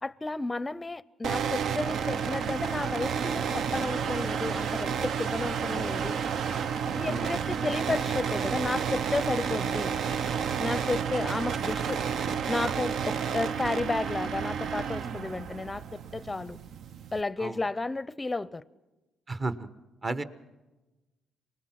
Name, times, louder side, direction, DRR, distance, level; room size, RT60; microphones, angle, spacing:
voice 1, 0.0-6.2 7.0-9.9 10.6-12.0 12.5-16.6 17.1-18.6, left 3 dB, 20° left, 0.6 m, -32 dB
sound 1, 1.2-17.2, right 7 dB, 70° right, 0.6 m, -31 dB
voice 2, 19.3-19.7 20.0-20.2, right 3 dB, 35° right, 1.1 m, -33 dB
24.5 x 20.0 x 5.9 m
cardioid pair, 90°, 0 cm